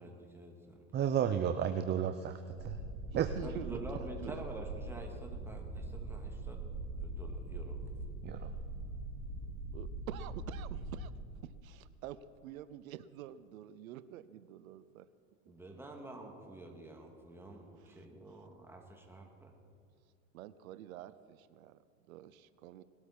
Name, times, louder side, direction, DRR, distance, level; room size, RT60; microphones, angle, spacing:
voice 1, 0.0-0.9 3.4-6.6 7.0-7.8 15.5-19.5, right 2 dB, 5° right, 1 dB, 2.2 m, -48 dB
voice 2, 0.9-2.8 3.2-3.3 8.2-8.5, right 9 dB, 25° right, 9 dB, 0.6 m, -32 dB
sound 1, 2.5-11.2, right 2 dB, 65° right, 4.2 m, -42 dB
voice 3, 3.1-4.4 9.4-11.1 11.4-15.1 15.5-15.6 17.8-18.1 20.3-21.8 22.1-22.8, right 12 dB, 85° right, 15 dB, 0.7 m, -48 dB
20.0 x 13.0 x 4.3 m, 2.2 s
supercardioid pair, 110°, 40 cm